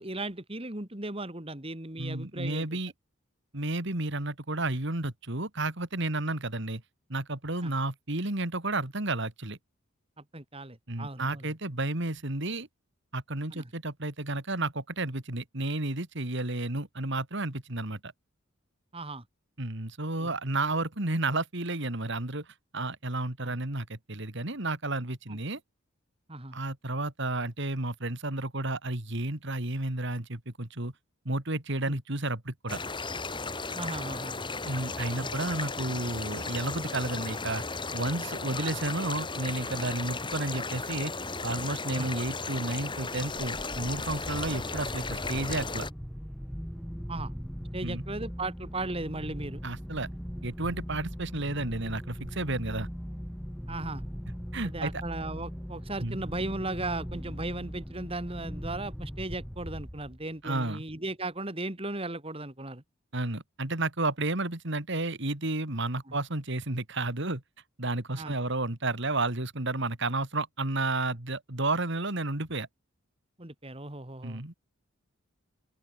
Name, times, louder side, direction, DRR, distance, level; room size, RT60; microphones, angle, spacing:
voice 1, 0.0-2.7 7.6-7.7 10.3-11.5 13.5-13.7 18.9-19.2 20.2-20.3 23.4-23.6 25.3-25.4 26.3-26.6 31.9-32.0 33.7-34.4 35.1-35.3 38.6-38.8 42.0-42.1 47.1-47.3 47.7-49.6 53.7-54.0 54.6-62.8 68.2-68.3 73.4-74.4, right 2 dB, 25° right, 2.5 m, -37 dB
voice 2, 2.0-2.9 3.5-6.8 7.1-9.6 10.9-12.7 13.1-18.1 19.6-22.5 22.7-25.6 26.5-30.9 31.2-32.8 34.6-37.6 37.9-41.1 41.4-45.9 47.8-48.0 49.6-50.1 50.4-52.9 54.5-54.9 56.0-56.2 60.4-60.8 63.1-67.4 67.8-72.7 74.2-74.5, right 2 dB, 60° right, 2.7 m, -32 dB
sound 1, 32.7-45.9, left 3 dB, 20° left, 4.5 m, -35 dB
sound 2, 43.5-60.4, equal, ahead, 3.0 m, -40 dB
open air
head